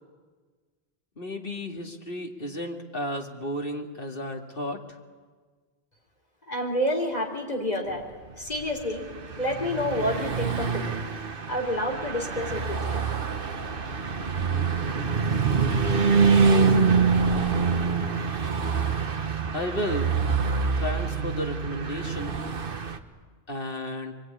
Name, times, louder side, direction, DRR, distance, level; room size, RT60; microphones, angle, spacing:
voice 1, 1.2-4.8 19.5-20.2 20.8-22.4 23.5-24.1, left 1 dB, 60° left, 2 dB, 2.6 m, -33 dB
voice 2, 6.5-8.0 8.4-9.0 9.4-11.0 11.5-13.1, left 1 dB, 40° left, 2 dB, 4.0 m, -29 dB
Car passing by / Truck, 8.6-23.0, right 5 dB, 55° right, 1.4 m, -25 dB
24.0 x 22.0 x 9.9 m, 1.4 s
omnidirectional pair, 1.1 m